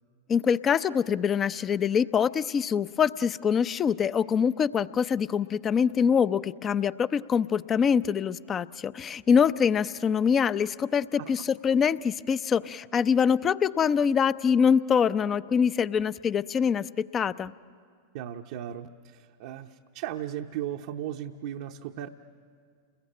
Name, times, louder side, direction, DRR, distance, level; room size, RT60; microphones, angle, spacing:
voice 1, 0.3-17.5, left 7 dB, 30° left, 16 dB, 0.6 m, -24 dB
voice 2, 18.1-22.1, right 11 dB, 60° right, 3 dB, 0.8 m, -36 dB
30.0 x 21.5 x 8.7 m, 2.2 s
hypercardioid pair, 95°, 0 cm